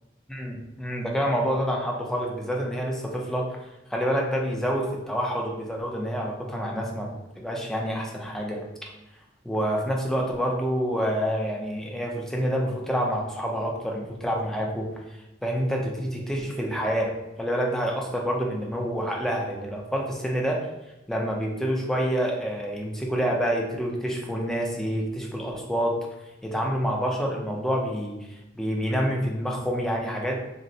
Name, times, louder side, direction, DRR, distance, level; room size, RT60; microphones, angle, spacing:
voice 1, 0.3-3.4 3.9-7.1 7.4-8.6 9.4-14.9 15.4-17.1 17.4-20.6 21.1-25.9 26.4-28.2 28.5-30.6, equal, 5° left, -1 dB, 0.4 m, -27 dB
4.0 x 2.0 x 2.5 m, 0.94 s
head